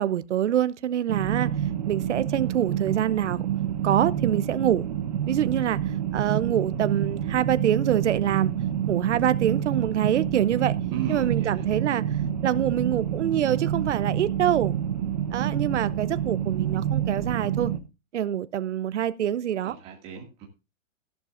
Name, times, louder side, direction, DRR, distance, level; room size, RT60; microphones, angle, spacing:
voice 1, 0.0-1.5 1.9-3.4 3.8-4.8 5.3-5.8 6.1-8.5 8.9-10.7 11.1-12.0 12.4-14.8 15.3-17.7 18.1-19.7, right 10 dB, 60° right, 0.8 m, -25 dB
sound 1, 1.1-17.8, right 9 dB, 30° right, 0.9 m, -28 dB
voice 2, 10.9-11.7 19.6-20.5, right 8 dB, 15° right, 2.1 m, -35 dB
14.5 x 11.5 x 2.5 m
hypercardioid pair, 175°, 40 cm